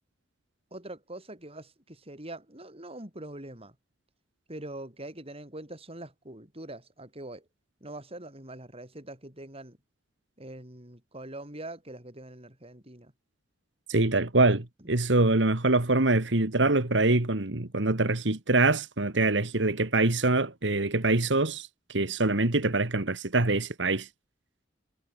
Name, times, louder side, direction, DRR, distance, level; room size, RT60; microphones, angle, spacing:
voice 1, 0.7-3.8 4.5-7.5 7.8-9.8 10.4-13.1, right 1 dB, 35° right, 7.9 m, -43 dB
voice 2, 13.9-24.1, right 2 dB, 85° right, 2.0 m, -24 dB
head